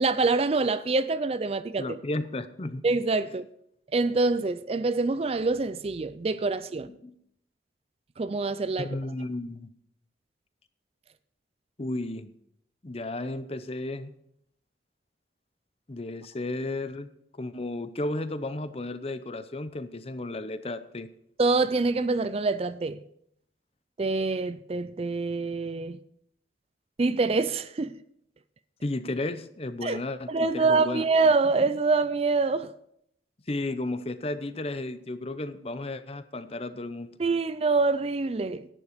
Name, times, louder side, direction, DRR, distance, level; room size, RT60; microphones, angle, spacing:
voice 1, 0.0-1.9 2.8-3.5 3.9-6.9 8.2-8.9 21.4-23.0 24.0-26.0 27.0-27.9 29.8-30.0 30.3-32.7 37.2-38.7, right 3 dB, 35° right, 0.4 m, -25 dB
voice 2, 1.8-2.8 7.0-7.1 8.8-9.7 11.8-12.3 12.8-14.1 15.9-17.1 17.4-21.1 28.8-31.0 33.5-37.1, left 2 dB, 30° left, 0.7 m, -33 dB
11.0 x 9.8 x 5.1 m
head